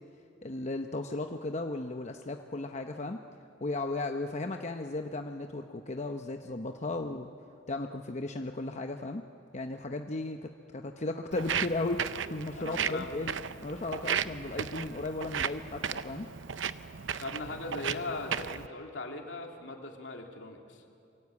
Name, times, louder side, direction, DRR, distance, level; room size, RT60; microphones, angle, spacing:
voice 1, 0.4-3.2 3.6-7.3 7.7-9.2 9.5-13.4 13.6-16.3, left 2 dB, 40° left, 5 dB, 0.9 m, -35 dB
Walk footsteps, 11.3-18.7, right 7 dB, 80° right, 0.7 m, -35 dB
voice 2, 12.6-13.1 17.1-20.8, left 2 dB, 75° left, 2 dB, 3.0 m, -39 dB
27.0 x 23.0 x 8.5 m, 2.5 s
head